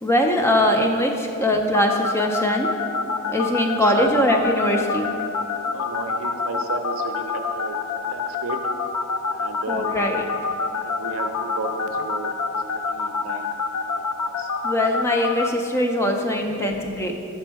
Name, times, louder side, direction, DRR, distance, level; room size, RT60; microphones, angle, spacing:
voice 1, 0.0-2.7 3.3-5.1 9.7-10.2 14.6-17.1, left 1 dB, 10° left, 3 dB, 0.4 m, -21 dB
sound 1, 1.7-15.5, left 5 dB, 85° left, 0.4 m, -25 dB
voice 2, 3.7-4.1 5.7-7.8 8.1-8.6 9.3-9.9 10.2-10.3 10.8-12.3 12.9-13.5 13.9-14.5 16.5-16.7, right 3 dB, 70° right, 5 dB, 0.5 m, -33 dB
7.0 x 4.4 x 4.5 m, 2.8 s
head